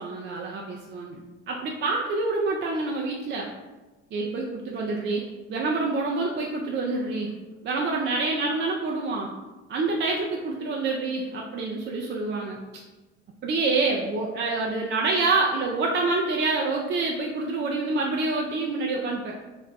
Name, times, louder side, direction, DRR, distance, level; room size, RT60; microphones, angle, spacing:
voice 1, 0.0-3.5 4.1-7.3 7.6-9.3 9.7-12.8 13.4-19.4, right 3 dB, 35° right, -1 dB, 0.4 m, -27 dB
2.5 x 2.1 x 3.9 m, 1.2 s
hypercardioid pair, 60°, 36 cm